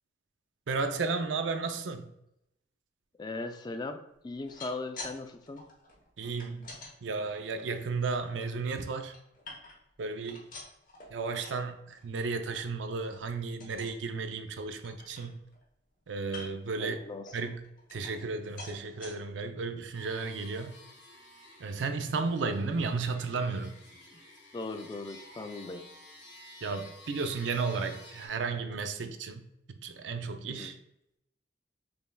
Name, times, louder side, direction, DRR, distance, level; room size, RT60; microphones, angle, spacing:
voice 1, 0.7-2.1 6.2-9.1 10.0-10.5 11.1-15.4 16.1-17.0 17.3-17.6 17.9-20.8 21.6-23.8 26.6-30.8, right 4 dB, 85° right, 7 dB, 0.4 m, -34 dB
voice 2, 3.2-5.7 16.8-17.2 24.1-24.2 24.5-25.9 30.5-30.7, left 3 dB, 25° left, 7 dB, 0.3 m, -39 dB
sound 1, 4.3-5.2 5.4-6.9 7.5-8.5 8.9-9.9 10.2-11.6 12.0-12.2 12.5-12.6 13.0-13.2 13.6-14.0 14.5-14.6 14.8-15.6 16.2-16.7 17.3-18.3 18.6-19.1 19.7-19.8 20.1-20.2, left 3 dB, 45° left, 1.0 m, -47 dB
sound 2, 19.9-28.3, left 2 dB, 80° left, 1.4 m, -52 dB
5.2 x 3.3 x 2.2 m, 0.81 s
head